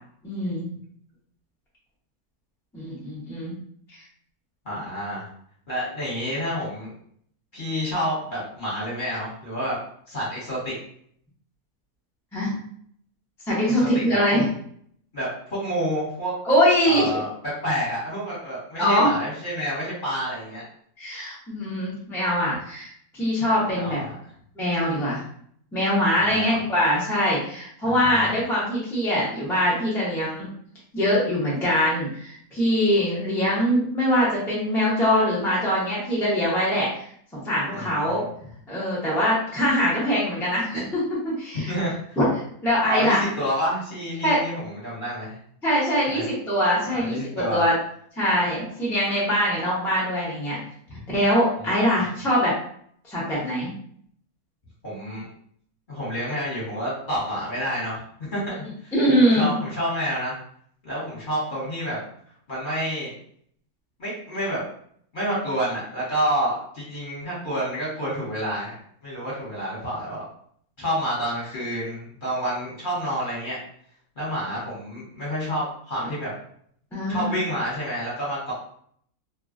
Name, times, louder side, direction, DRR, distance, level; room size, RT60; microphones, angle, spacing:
voice 1, 0.2-0.7 2.7-3.5 12.3-12.5 13.5-14.4 16.4-17.1 18.8-19.1 21.0-24.0 24.6-25.2 25.7-30.5 30.9-37.0 37.3-38.2 38.7-41.7 42.2-42.3 42.6-43.3 44.2-44.4 45.6-47.7 48.2-50.6 51.1-52.5 53.0-53.7 58.9-59.5 76.9-77.3, equal, ahead, -8 dB, 0.6 m, -23 dB
voice 2, 4.6-5.2 5.7-6.9 7.5-9.8 10.1-10.7 13.7-14.2 15.1-16.3 16.9-20.7 23.7-24.2 26.2-26.6 27.8-28.3 37.7-38.3 41.7-42.2 42.9-45.3 46.1-46.3 46.9-47.6 50.9-51.0 51.6-51.8 54.8-55.3 55.9-58.0 58.3-58.9 59.2-60.3 60.8-62.0 62.5-63.1 64.0-64.6 65.1-68.7 69.0-70.2 70.8-73.6 74.2-76.3 77.1-78.5, equal, 35° left, -7 dB, 1.2 m, -29 dB
2.8 x 2.3 x 2.5 m, 0.64 s
omnidirectional pair, 1.6 m